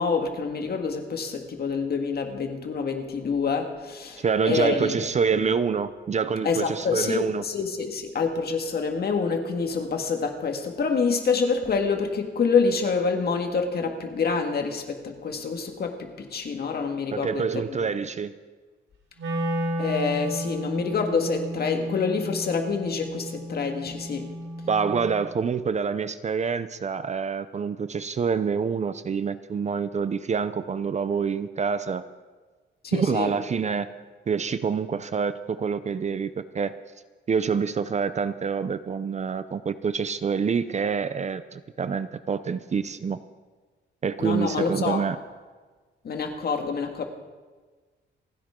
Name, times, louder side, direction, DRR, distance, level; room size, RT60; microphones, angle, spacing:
voice 1, 0.0-5.1 6.4-17.8 19.8-24.3 32.8-33.3 44.2-45.1 46.0-47.1, left 5 dB, 55° left, 1.9 m, -27 dB
voice 2, 4.2-7.4 17.1-18.3 24.7-32.0 32.9-33.9 34.3-36.7 37.3-43.2 44.0-45.2, right 6 dB, 35° right, 0.6 m, -26 dB
Wind instrument woodwind instrument, 19.2-25.3, equal, 85° right, 3.6 m, -33 dB
27.5 x 10.5 x 3.7 m
cardioid pair, 115°, 20 cm